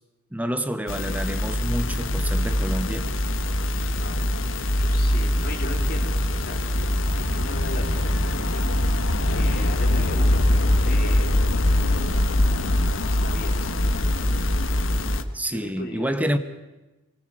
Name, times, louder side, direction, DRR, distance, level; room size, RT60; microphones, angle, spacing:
voice 1, 0.3-3.2 15.3-16.4, equal, 10° right, 1.0 m, -28 dB
sound 1, 0.9-15.2, left 1 dB, 75° left, 1.4 m, -23 dB
voice 2, 4.0-11.4 12.6-14.4 15.1-15.2 15.5-16.4, left 2 dB, 50° left, 3.7 m, -38 dB
24.0 x 20.0 x 7.6 m
head